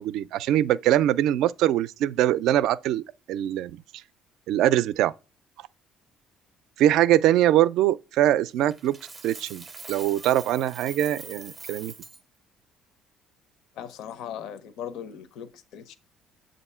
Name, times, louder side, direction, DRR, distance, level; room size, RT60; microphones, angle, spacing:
voice 1, 0.0-3.0 3.3-3.8 4.5-5.1 6.8-8.9 9.2-11.9, right 12 dB, 75° right, 0.3 m, -22 dB
Coin (dropping), 8.7-12.2, right 4 dB, 20° right, 0.5 m, -43 dB
voice 2, 13.7-15.9, left 9 dB, 75° left, 0.6 m, -38 dB
7.7 x 2.6 x 5.4 m
cardioid pair, 130°, 0 cm